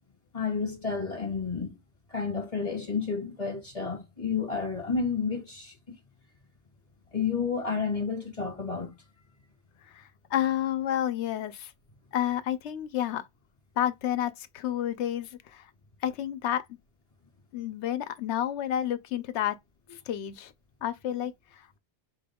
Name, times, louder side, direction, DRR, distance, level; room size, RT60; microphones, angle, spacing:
voice 1, 0.3-1.8 2.1-6.0 7.1-8.9, left 5 dB, 30° left, 1.8 m, -31 dB
voice 2, 9.8-11.7 12.1-13.2 13.8-15.7 16.0-16.6 17.5-19.6 19.9-20.5 20.8-21.8, left 11 dB, 85° left, 0.9 m, -30 dB
5.0 x 4.6 x 2.3 m
omnidirectional pair, 1.1 m